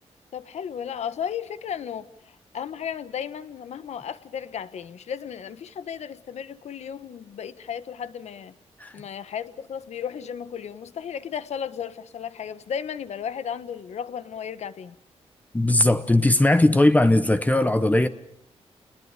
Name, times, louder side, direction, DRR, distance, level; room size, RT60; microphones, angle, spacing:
voice 1, 0.3-8.5 8.9-14.9, left 8 dB, 75° left, 1.4 m, -34 dB
voice 2, 15.5-18.1, left 1 dB, 15° left, 1.2 m, -19 dB
30.0 x 20.5 x 6.8 m
cardioid pair, 100°, 12 cm